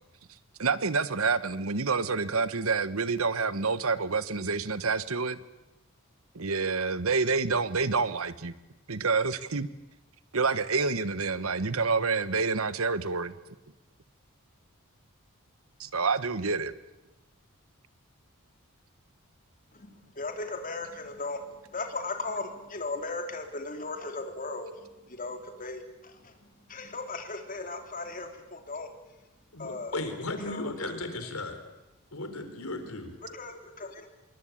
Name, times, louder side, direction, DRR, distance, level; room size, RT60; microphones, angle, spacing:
voice 1, 0.6-5.4 6.3-8.5 8.9-9.7 10.3-13.3 15.8-16.7, right 4 dB, 75° right, 1.3 m, -28 dB
voice 2, 19.7-29.3 29.6-30.0 30.5-31.1 33.2-34.1, left 3 dB, 40° left, 3.6 m, -37 dB
voice 3, 29.5-31.6 32.1-33.1, left 2 dB, 85° left, 4.4 m, -35 dB
26.5 x 22.5 x 8.8 m
head